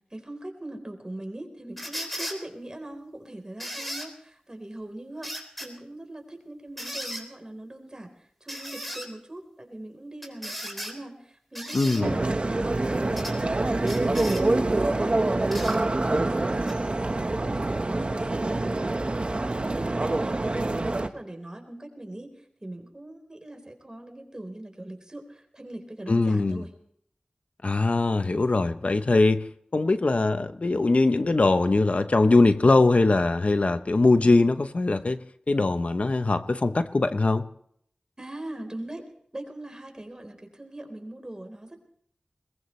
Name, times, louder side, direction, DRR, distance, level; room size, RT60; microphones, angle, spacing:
voice 1, 0.1-26.7 38.2-39.0 39.3-41.8, right 1 dB, 30° right, 5 dB, 4.0 m, -41 dB
sound 1, 1.8-2.4 3.6-4.1 5.2-5.7 6.8-7.2 8.5-9.1 10.2-10.9 11.5-12.0 13.2-13.4 13.8-14.4 15.5-15.8 16.7-16.8, equal, 5° left, 3.7 m, -36 dB
voice 2, 11.7-12.2 26.1-26.6 27.6-35.2 35.5-37.4, left 3 dB, 60° left, 10 dB, 0.8 m, -22 dB
sound 2, 12.0-21.1, right 2 dB, 50° right, 1.2 m, -26 dB
21.5 x 20.5 x 3.2 m, 0.66 s
wide cardioid pair, 60°, 3 cm